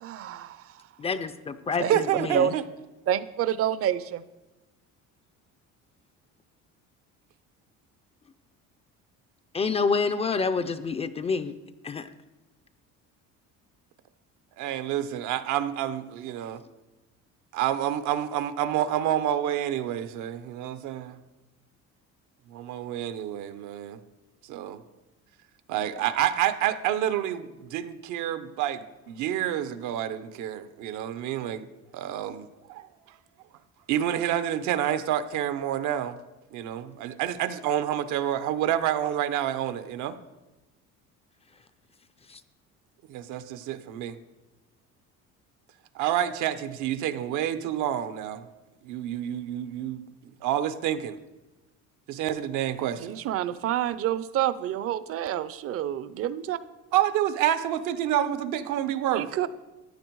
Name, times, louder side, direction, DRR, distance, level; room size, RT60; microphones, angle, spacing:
voice 1, 0.0-0.9 1.8-2.0 2.3-2.5 3.1-4.2 53.0-56.6 59.1-59.5, right 11 dB, 50° right, 16 dB, 0.6 m, -28 dB
voice 2, 1.0-2.5 9.5-11.5 11.8-12.1 42.3-42.4, left 4 dB, 20° left, 12 dB, 0.4 m, -28 dB
voice 3, 1.9-2.6 14.6-16.6 17.5-21.2 22.5-24.0 24.4-24.8 25.7-31.7 31.9-32.9 33.9-36.2 36.5-40.2 43.1-44.2 45.9-48.5 48.8-51.2 52.1-53.2 56.9-59.3, right 11 dB, 75° right, 12 dB, 0.9 m, -28 dB
14.5 x 10.0 x 4.7 m, 1.1 s
cardioid pair, 155°, 30 cm